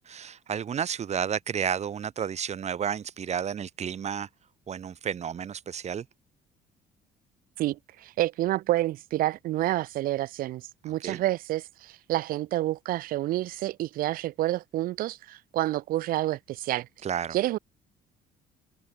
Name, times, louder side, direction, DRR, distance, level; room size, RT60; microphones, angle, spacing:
voice 1, 0.1-4.3 4.7-6.1 11.0-11.2 17.0-17.4, right 8 dB, 40° right, 1.3 m, -31 dB
voice 2, 7.6-16.9 17.3-17.6, right 15 dB, 60° right, 0.4 m, -29 dB
cardioid pair, 110°, 17 cm